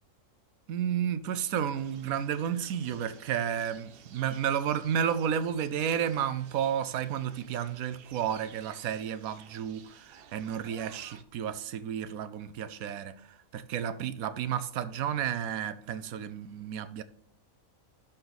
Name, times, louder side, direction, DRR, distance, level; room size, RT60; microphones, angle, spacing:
voice 1, 0.7-17.0, right 9 dB, 90° right, 1.1 m, -32 dB
sound 1, 1.7-11.2, right 8 dB, 55° right, 0.7 m, -54 dB
12.0 x 4.4 x 4.0 m
omnidirectional pair, 1.4 m